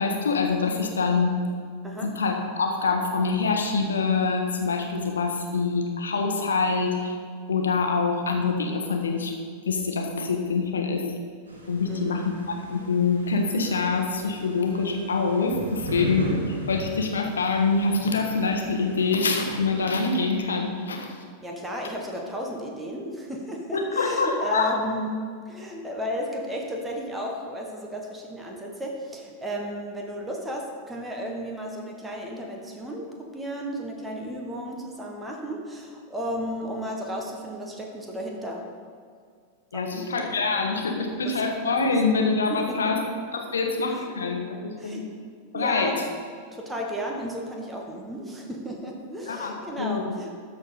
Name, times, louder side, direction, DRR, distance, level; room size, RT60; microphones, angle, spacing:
voice 1, 0.0-1.4 2.0-7.1 7.5-9.3 9.6-11.0 11.7-21.2 23.7-24.8 39.7-43.0 43.3-45.1 45.5-46.0 49.3-50.2, left 4 dB, 70° left, 2 dB, 1.3 m, -25 dB
sound 1, 11.5-19.6, right 1 dB, 75° right, 1.7 m, -37 dB
voice 2, 11.8-12.2 21.4-38.7 39.7-40.2 40.5-40.8 41.2-41.3 41.8-41.9 42.5-42.8 43.9-44.0 44.8-45.0 45.5-45.9 46.5-50.3, equal, 10° right, 0 dB, 1.4 m, -34 dB
13.5 x 4.4 x 5.5 m, 2.1 s
figure-of-eight pair, 90°, 0 cm